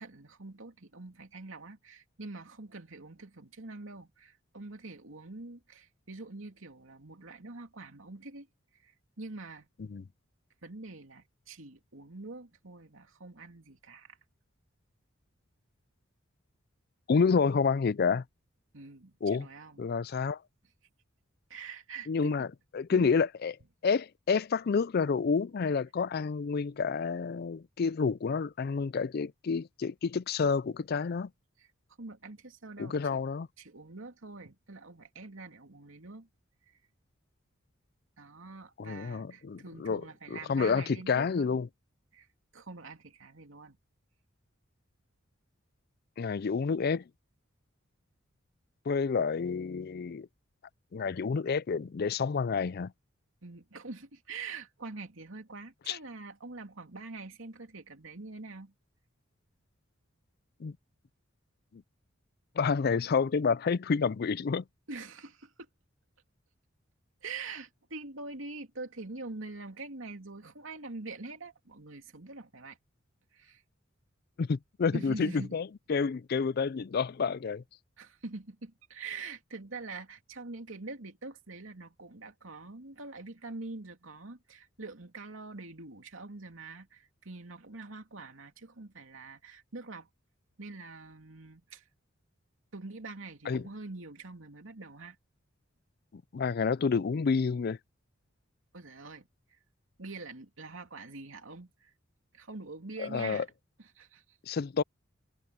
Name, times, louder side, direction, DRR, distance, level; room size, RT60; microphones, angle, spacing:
voice 1, 0.0-8.5 8.7-9.7 10.6-14.2 18.7-19.8 21.5-22.3 22.9-23.1 32.0-33.2 33.6-36.3 36.7-36.8 38.2-41.6 42.1-42.3 42.5-43.8 53.4-58.7 64.9-65.7 67.2-72.8 73.3-73.6 74.9-75.5 78.0-90.1 90.6-91.9 92.7-95.2 98.7-99.6 100.0-101.9 102.3-103.4 103.9-104.4, right 3 dB, 85° right, 2.7 m, -45 dB
voice 2, 17.1-18.2 19.2-19.5 19.8-20.4 22.1-22.5 22.7-23.6 23.8-31.3 32.8-33.5 38.8-41.7 46.2-47.1 48.8-50.3 50.9-52.9 55.9-56.0 60.6-60.8 61.7-61.8 62.5-64.7 74.4-77.6 93.5-93.7 96.1-97.8 103.0-103.5 104.4-104.8, left 5 dB, 50° left, 0.4 m, -29 dB
head